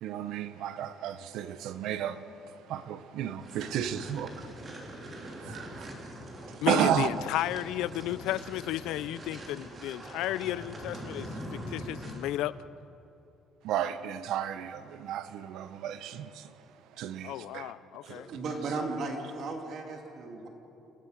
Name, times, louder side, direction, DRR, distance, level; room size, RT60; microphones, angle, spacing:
voice 1, 0.0-2.2 2.7-6.0 6.5-7.1 13.6-16.5 17.0-17.7, right 10 dB, 70° right, 1.0 m, -33 dB
sound 1, 3.4-12.4, equal, 30° right, 3.3 m, -43 dB
voice 2, 6.6-12.5 17.2-18.3, left 14 dB, 80° left, 0.5 m, -33 dB
voice 3, 18.0-20.5, right 3 dB, 50° right, 2.5 m, -36 dB
28.5 x 17.0 x 6.5 m
cardioid pair, 145°, 0 cm